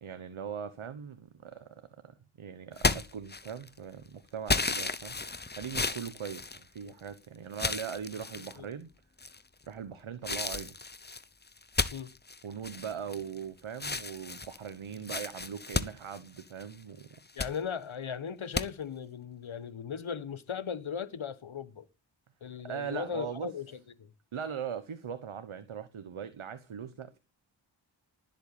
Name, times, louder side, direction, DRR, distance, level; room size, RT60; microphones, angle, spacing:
voice 1, 0.0-1.7 2.0-5.2 5.5-8.9 9.7-10.8 12.4-17.1 22.6-23.5 24.3-27.2, right 7 dB, 90° right, 1.2 m, -40 dB
sound 1, 2.8-3.8 4.5-7.1 7.5-8.6 9.2-9.7 10.2-13.4 13.7-16.7 17.1-17.6 18.5-18.7, left 3 dB, 20° left, 0.8 m, -33 dB
voice 2, 17.3-21.9 22.4-24.1, left 7 dB, 75° left, 1.4 m, -38 dB
19.5 x 8.0 x 8.7 m
wide cardioid pair, 85°, 48 cm